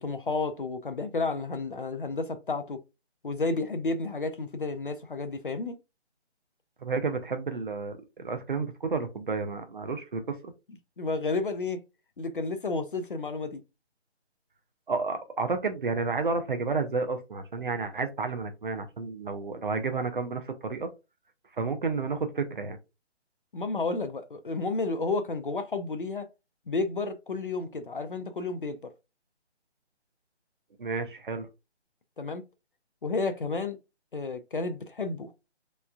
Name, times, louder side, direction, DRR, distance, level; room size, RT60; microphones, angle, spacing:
voice 1, 0.0-2.8 3.2-5.8 11.0-11.8 12.2-13.6 23.5-26.3 26.7-28.9 32.2-32.4 33.0-33.8 34.1-35.3, left 3 dB, 50° left, 0.4 m, -31 dB
voice 2, 6.8-10.5 14.9-20.9 21.6-22.8 30.8-31.5, right 4 dB, 45° right, 0.6 m, -31 dB
3.3 x 3.0 x 2.3 m
figure-of-eight pair, 165°, 35 cm